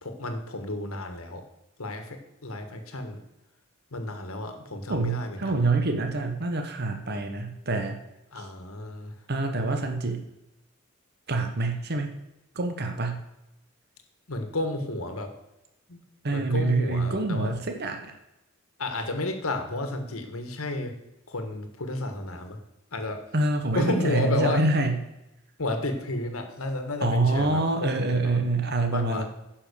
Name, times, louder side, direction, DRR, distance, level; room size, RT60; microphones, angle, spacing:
voice 1, 0.0-1.4 1.8-3.2 3.9-5.6 8.3-9.1 14.3-15.3 15.9-16.0 16.3-17.5 18.8-20.9 21.3-22.6 22.9-23.2 23.7-24.6 25.6-28.4 28.9-29.2, left 2 dB, 75° left, 6 dB, 1.6 m, -32 dB
voice 2, 4.9-8.0 8.4-8.5 9.3-10.2 11.3-12.1 12.5-13.2 16.2-18.2 23.3-24.9 27.0-29.2, right 2 dB, 50° right, 5 dB, 1.1 m, -26 dB
10.0 x 5.8 x 6.8 m, 0.92 s
head